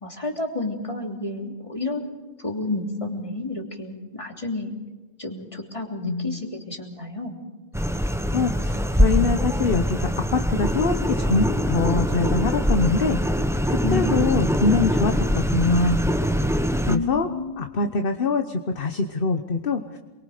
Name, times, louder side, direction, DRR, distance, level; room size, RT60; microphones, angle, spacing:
voice 1, 0.0-4.7 5.2-7.4 13.8-14.5 16.9-17.6, left 2 dB, 25° left, 1 dB, 3.2 m, -31 dB
voice 2, 6.0-6.4 7.9-13.2 13.7-16.0 16.9-17.3 17.6-20.0, left 4 dB, 45° left, 5 dB, 1.2 m, -24 dB
sound 1, 7.7-17.0, equal, 5° right, 0.8 m, -23 dB
28.0 x 23.0 x 5.1 m, 1.2 s
omnidirectional pair, 1.4 m